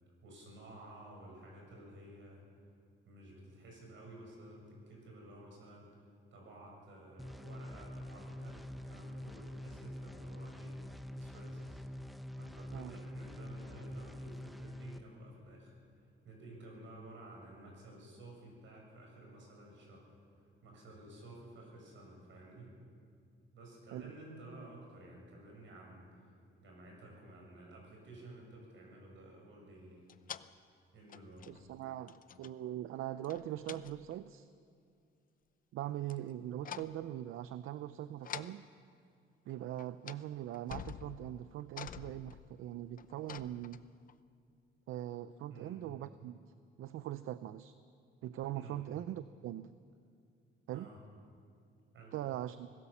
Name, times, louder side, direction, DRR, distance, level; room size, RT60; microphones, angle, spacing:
voice 1, 0.2-2.4 3.1-5.9 6.3-11.8 12.4-15.7 16.2-20.1 20.6-22.8 23.5-26.1 26.6-30.1 30.9-31.5 45.5-45.8 48.5-48.8 50.7-51.0 51.9-52.2, right 1 dB, 70° right, -1 dB, 7.7 m, -53 dB
sound 1, 7.2-15.0, left 1 dB, ahead, 0.9 m, -46 dB
sound 2, 30.1-30.5 31.1-31.8 32.1-32.6 33.2-34.2 36.1-36.3 36.6-37.1 38.2-38.6 39.5-39.6 39.8-40.3 40.5-44.1, left 9 dB, 40° left, 0.6 m, -48 dB
voice 2, 31.5-34.5 35.7-38.7 39.5-43.8 44.9-46.5 46.8-47.7 48.2-49.7 50.7-50.9 52.1-52.7, right 12 dB, 85° right, 13 dB, 0.6 m, -41 dB
25.5 x 17.5 x 7.2 m, 2.3 s
cardioid pair, 135°, 21 cm